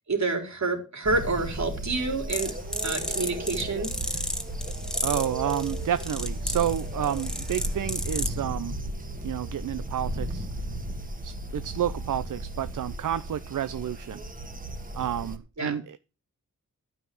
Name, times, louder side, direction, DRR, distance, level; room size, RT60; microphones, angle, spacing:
voice 1, 0.1-2.5 2.8-3.9 15.6-15.7, right 3 dB, 60° right, 2 dB, 4.0 m, -28 dB
sound 1, 1.0-15.4, right 1 dB, 25° right, 1.8 m, -35 dB
sound 2, 2.3-8.4, left 1 dB, ahead, 1.9 m, -34 dB
voice 2, 5.0-8.8 9.2-10.5 11.2-14.2 14.9-16.0, right 10 dB, 75° right, 14 dB, 0.6 m, -30 dB
12.0 x 5.8 x 7.6 m, 0.34 s
wide cardioid pair, 105°, 31 cm